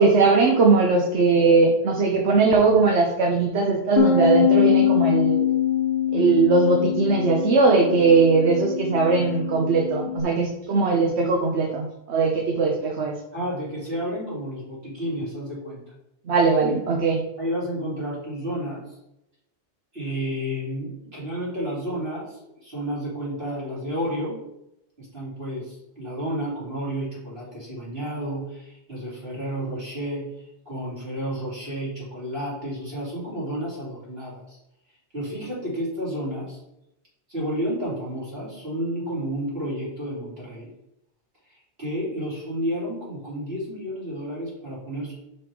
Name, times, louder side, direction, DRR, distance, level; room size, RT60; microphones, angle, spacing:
voice 1, 0.0-5.4 6.1-13.1 16.3-17.2, right 4 dB, 80° right, 1 dB, 1.2 m, -20 dB
Bass guitar, 4.0-10.2, left 9 dB, 55° left, 0.9 m, -23 dB
voice 2, 13.3-15.8 16.6-16.8 17.4-19.0 19.9-24.4 25.0-30.3 30.6-34.6 35.1-36.6 37.3-40.7 41.5-45.1, equal, 60° right, -7 dB, 3.4 m, -31 dB
5.5 x 5.4 x 4.7 m, 0.85 s
omnidirectional pair, 1.1 m